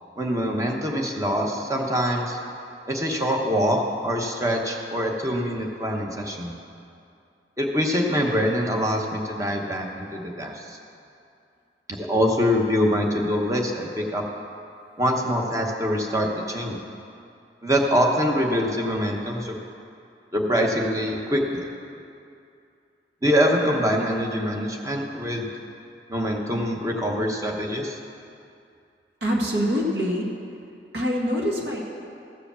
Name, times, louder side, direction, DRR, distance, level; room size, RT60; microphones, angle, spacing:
voice 1, 0.2-2.4 2.9-6.5 7.6-10.8 11.9-14.2 15.0-16.8 17.6-19.6 20.3-21.7 23.2-25.5 26.1-28.0, equal, 20° right, 1 dB, 1.0 m, -24 dB
voice 2, 29.2-30.3 30.9-31.9, equal, 65° right, -2 dB, 1.7 m, -24 dB
15.0 x 5.0 x 7.0 m, 2.5 s
head